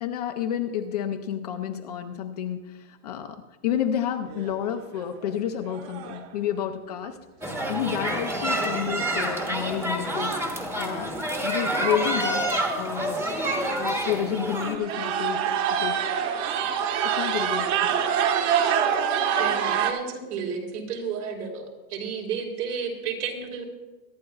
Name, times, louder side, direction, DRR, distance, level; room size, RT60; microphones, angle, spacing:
voice 1, 0.0-7.2 7.5-11.2 11.4-12.5 12.8-13.2 13.8-16.2 17.0-17.9, left 9 dB, 30° left, 5 dB, 0.4 m, -30 dB
sound 1, 4.3-4.7 5.2-5.3 5.7-6.3 9.5-9.6 10.7-10.8 11.0-11.4 11.8-11.9 12.6-12.7 13.0-13.2 13.6-14.0 14.6-19.9, right 8 dB, 40° right, 1.4 m, -26 dB
sound 2, 7.4-14.8, right 1 dB, 5° right, 1.0 m, -28 dB
voice 2, 19.4-23.6, right 6 dB, 70° right, 1 dB, 3.5 m, -32 dB
23.5 x 11.0 x 2.3 m, 1.2 s
hypercardioid pair, 150°, 46 cm